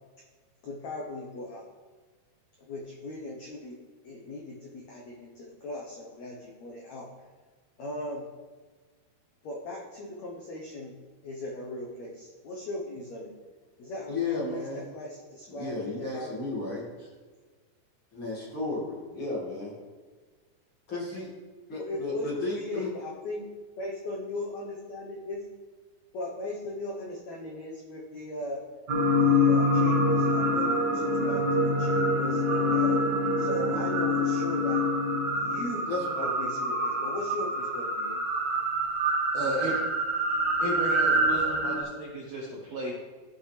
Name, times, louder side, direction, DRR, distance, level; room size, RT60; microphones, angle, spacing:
voice 1, 0.6-1.7 2.6-3.8 4.0-7.1 7.8-8.3 9.4-10.9 11.2-13.3 13.8-16.3 21.9-23.4 23.8-25.4 26.1-28.6 29.2-33.0 33.4-34.8 35.3-35.9 36.2-38.2, left 2 dB, 80° left, -1 dB, 1.6 m, -38 dB
voice 2, 14.1-14.9 15.5-16.9 18.1-19.7 20.9-21.3 21.7-22.9 35.9-36.4, left 3 dB, 40° left, -5 dB, 2.1 m, -34 dB
sound 1, 28.9-41.8, left 1 dB, 85° right, 0.9 m, -26 dB
voice 3, 39.3-39.8 40.6-42.9, right 1 dB, 65° right, -5 dB, 1.7 m, -33 dB
15.0 x 5.9 x 3.3 m, 1.4 s
omnidirectional pair, 4.8 m